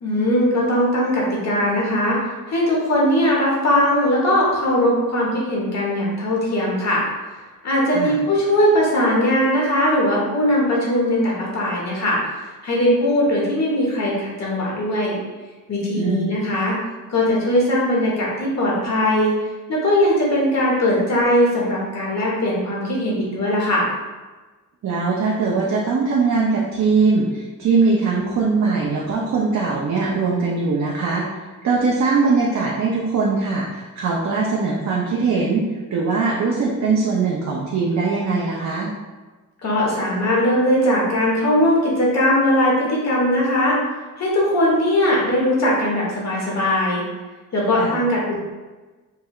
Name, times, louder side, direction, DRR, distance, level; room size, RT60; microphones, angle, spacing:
voice 1, 0.0-2.2 2.5-7.0 7.6-12.2 12.6-15.2 15.7-16.7 17.1-19.4 19.7-23.9 39.6-43.8 44.2-47.0 47.5-48.4, left 1 dB, 50° left, -4 dB, 1.3 m, -19 dB
voice 2, 16.0-16.3 24.8-31.3 31.6-38.9 47.8-48.0, right 4 dB, 55° right, -4 dB, 0.6 m, -21 dB
4.8 x 3.2 x 2.4 m, 1.2 s
wide cardioid pair, 170°, 34 cm